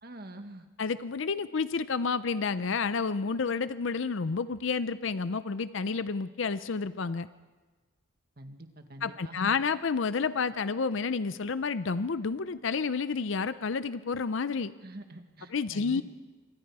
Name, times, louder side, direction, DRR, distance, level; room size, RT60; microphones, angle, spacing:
voice 1, 0.0-0.7 8.4-9.6 14.8-16.0, right 1 dB, 45° right, 6 dB, 1.7 m, -46 dB
voice 2, 0.8-7.3 9.0-14.7 15.5-16.0, left 5 dB, 65° left, 14 dB, 0.5 m, -30 dB
26.0 x 24.0 x 4.8 m, 1.3 s
head